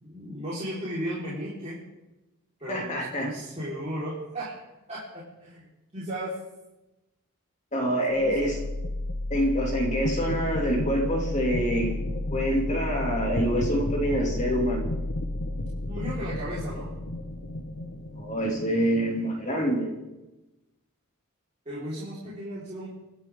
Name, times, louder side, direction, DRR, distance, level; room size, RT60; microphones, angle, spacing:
voice 1, 0.0-1.8 2.6-4.5 4.9-5.6 5.9-6.3 8.2-8.3 15.9-16.9 21.6-22.9, equal, 30° right, -9 dB, 4.5 m, -35 dB
voice 2, 2.7-3.3 7.7-8.6 9.3-12.0 12.3-14.9 18.2-19.9, equal, 35° left, 0 dB, 2.9 m, -26 dB
sound 1, 8.1-20.1, left 1 dB, 65° left, 1.3 m, -32 dB
29.5 x 11.0 x 3.8 m, 1.0 s
head